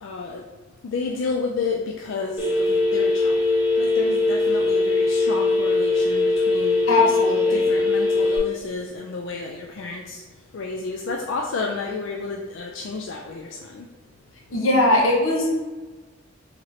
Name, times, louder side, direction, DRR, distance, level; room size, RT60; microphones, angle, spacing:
voice 1, 0.0-0.4 0.8-6.9 7.5-10.2 10.5-13.9, left 4 dB, 65° left, 1 dB, 0.3 m, -31 dB
Telephone, 2.4-8.4, left 2 dB, 5° right, 1.0 m, -21 dB
voice 2, 6.9-7.7 14.5-15.5, left 2 dB, 85° left, -1 dB, 0.9 m, -20 dB
4.8 x 3.0 x 2.8 m, 1.3 s
head